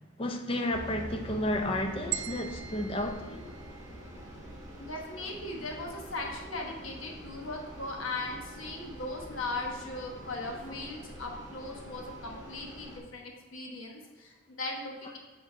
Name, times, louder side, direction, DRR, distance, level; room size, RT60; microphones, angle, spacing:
voice 1, 0.2-3.5 10.6-10.8, left 1 dB, 25° left, 4 dB, 0.5 m, -32 dB
sound 1, 0.7-13.0, right 1 dB, 15° right, 1.3 m, -47 dB
sound 2, 0.7-12.3, right 1 dB, 45° right, 0.9 m, -51 dB
sound 3, 2.1-4.3, right 11 dB, 70° right, 0.5 m, -40 dB
voice 2, 4.8-15.2, left 2 dB, 85° left, 1 dB, 1.2 m, -38 dB
7.8 x 3.7 x 4.5 m, 1.4 s
head